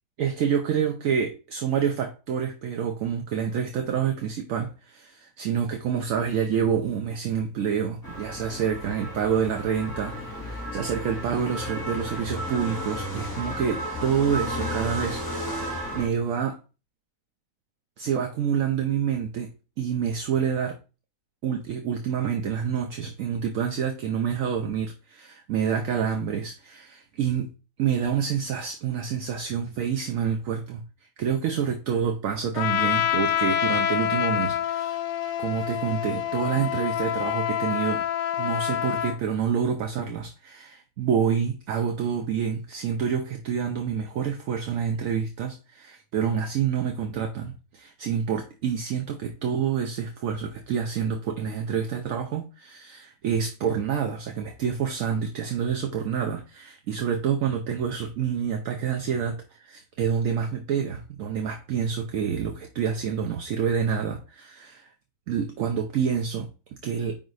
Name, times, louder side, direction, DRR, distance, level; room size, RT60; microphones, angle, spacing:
voice 1, 0.2-16.6 18.0-19.5 19.8-20.8 21.4-27.5 27.8-30.8 31.2-35.0 35.4-38.0 38.4-64.9 65.3-66.5 66.8-67.2, right 7 dB, 65° right, 1.0 m, -27 dB
sound 1, 8.0-16.1, equal, 15° left, 2.2 m, -33 dB
Trumpet, 32.5-39.2, left 11 dB, 75° left, 1.0 m, -27 dB
5.1 x 4.0 x 4.7 m
omnidirectional pair, 1.6 m